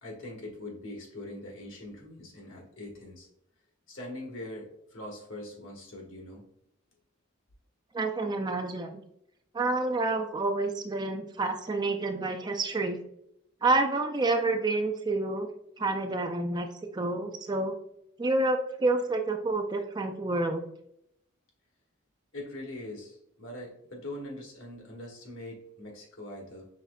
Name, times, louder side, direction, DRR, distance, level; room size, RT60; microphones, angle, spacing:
voice 1, 0.0-3.3 3.9-6.4 22.3-26.7, left 1 dB, 75° left, 0 dB, 1.4 m, -42 dB
voice 2, 7.9-9.0 9.5-13.0 13.6-15.5 15.8-16.7 16.9-17.8 18.2-20.6, right 2 dB, 20° right, 5 dB, 0.4 m, -28 dB
5.7 x 3.1 x 2.3 m, 0.76 s
head